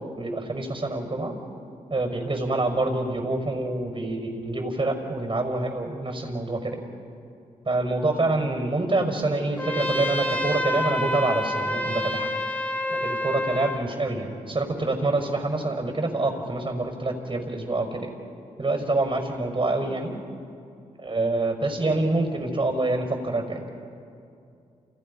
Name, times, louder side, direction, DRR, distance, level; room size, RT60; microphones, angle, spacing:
voice 1, 0.2-1.3 1.9-6.8 7.7-12.3 12.9-18.1 18.6-20.1 21.0-23.6, right 2 dB, 35° right, 5 dB, 5.4 m, -26 dB
Trumpet, 9.6-13.9, left 1 dB, 10° left, 2.5 m, -28 dB
30.0 x 28.5 x 5.5 m, 2.5 s
supercardioid pair, 45°, 15 cm